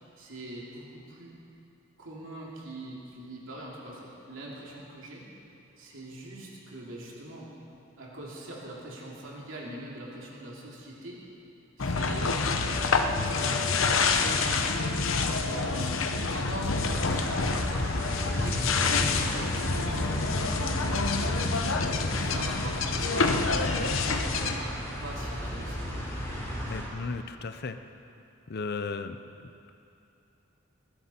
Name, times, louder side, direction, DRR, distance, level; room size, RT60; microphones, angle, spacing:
voice 1, 0.2-1.3 2.0-5.2 5.8-7.5 8.0-11.2 11.8-18.0 18.3-21.4 22.2-23.4 23.7-26.2, right 1 dB, 75° right, -4 dB, 2.8 m, -42 dB
sound 1, 11.8-24.6, left 4 dB, 80° left, 0.9 m, -27 dB
sound 2, 16.9-26.8, equal, 15° left, 4.1 m, -34 dB
voice 2, 26.7-27.8 28.5-29.2, left 4 dB, 55° left, 9 dB, 0.6 m, -35 dB
20.5 x 15.0 x 4.4 m, 2.8 s
head